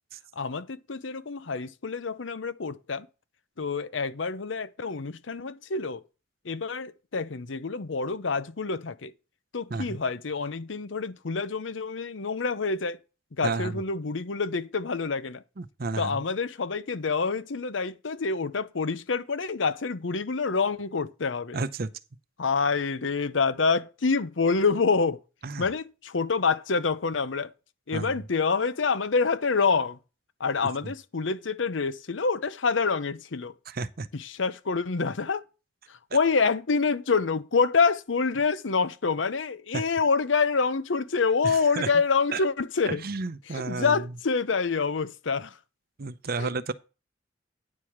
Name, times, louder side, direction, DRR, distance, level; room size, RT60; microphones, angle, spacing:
voice 1, 0.4-3.1 3.6-6.0 6.4-9.1 9.5-13.0 13.4-15.4 16.0-21.6 22.4-25.2 25.6-27.5 27.9-30.0 30.4-33.5 34.1-35.4 35.9-43.0 43.5-45.6 46.4-46.7, left 4 dB, 90° left, 0.8 m, -27 dB
voice 2, 13.4-13.8 15.6-16.2 21.5-21.9 25.4-25.7 27.9-28.1 33.7-34.1 39.7-39.8 41.4-41.9 42.3-42.4 42.9-44.0 46.0-46.7, right 3 dB, 55° right, 0.7 m, -31 dB
9.7 x 4.8 x 7.2 m
head